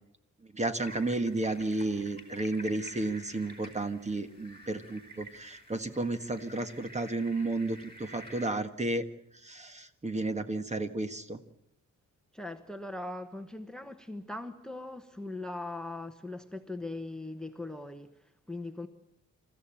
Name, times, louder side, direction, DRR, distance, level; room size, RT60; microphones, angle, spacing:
voice 1, 0.5-9.0 9.3-11.4, right 2 dB, 20° right, 1.6 m, -32 dB
sound 1, 0.8-8.5, equal, 20° left, 4.6 m, -50 dB
voice 2, 12.3-18.9, left 2 dB, ahead, 1.1 m, -40 dB
27.5 x 14.5 x 8.9 m
wide cardioid pair, 135°, 30 cm